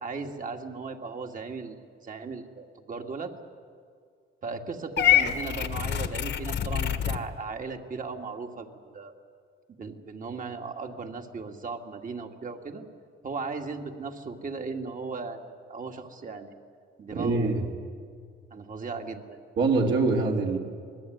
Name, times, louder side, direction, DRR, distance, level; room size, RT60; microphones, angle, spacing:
voice 1, 0.0-3.3 4.4-9.1 9.8-12.8 13.2-16.5 17.0-17.7 18.5-19.4, right 4 dB, 40° right, 4 dB, 2.3 m, -37 dB
Purr / Meow, 5.0-7.2, left 11 dB, 65° left, 1.6 m, -25 dB
voice 2, 17.1-17.6 19.6-20.6, right 3 dB, 65° right, 0 dB, 3.7 m, -24 dB
26.5 x 20.0 x 9.5 m, 2.2 s
cardioid pair, 90°, 20 cm